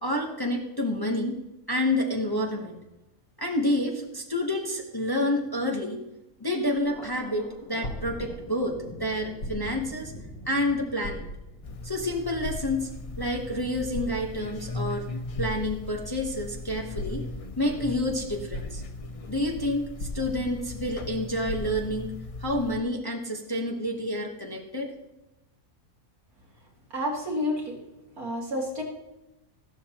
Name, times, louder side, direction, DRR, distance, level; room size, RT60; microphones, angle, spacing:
voice 1, 0.0-1.4 1.7-2.8 3.4-6.0 6.4-10.1 10.5-11.3 11.8-12.9 13.2-15.0 15.4-17.2 17.6-18.8 19.3-22.1 22.4-24.9, left 1 dB, 20° left, 1 dB, 0.9 m, -29 dB
sound 1, 6.6-8.7 9.3-10.0 10.4-10.5 11.0-11.7 12.4-13.3 13.8-14.6 15.4-16.1 16.9-17.6 18.2-18.3 18.5-19.2 20.0-20.8 21.1-21.2 21.5-22.1 22.8-22.9, left 1 dB, 85° left, 1.8 m, -37 dB
Thunder, 6.8-19.5 19.9-20.7 21.0-21.9, left 1 dB, 40° left, 3.0 m, -49 dB
sound 2, 11.6-22.8, left 2 dB, 60° left, 0.3 m, -39 dB
voice 2, 26.9-27.8 28.2-28.8, left 1 dB, 75° right, -2 dB, 2.7 m, -29 dB
14.5 x 12.0 x 2.9 m, 0.99 s
omnidirectional pair, 1.6 m